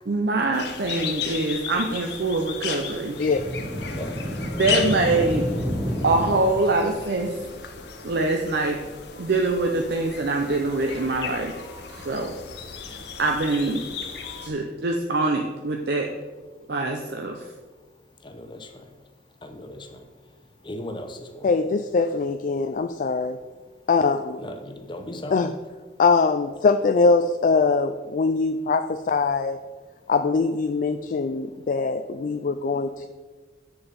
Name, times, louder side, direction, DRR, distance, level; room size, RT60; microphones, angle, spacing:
voice 1, 0.1-3.2 4.6-5.5 6.0-7.3 8.0-8.8 9.2-11.5 11.9-12.4 13.2-13.8 14.4-16.1 16.7-17.5, right 2 dB, 60° right, 2 dB, 0.7 m, -24 dB
sound 1, 0.5-14.5, left 6 dB, 65° left, 1.0 m, -35 dB
sound 2, 3.1-6.9, equal, 15° right, 1.1 m, -30 dB
voice 2, 18.2-18.7 19.4-20.0 20.6-21.5 24.4-25.5, left 1 dB, 25° left, 6 dB, 0.9 m, -37 dB
voice 3, 21.4-23.4 23.9-24.4 25.3-25.5 26.0-29.6 30.1-33.1, left 4 dB, 45° left, 8 dB, 0.3 m, -22 dB
8.0 x 6.9 x 5.3 m, 1.4 s
head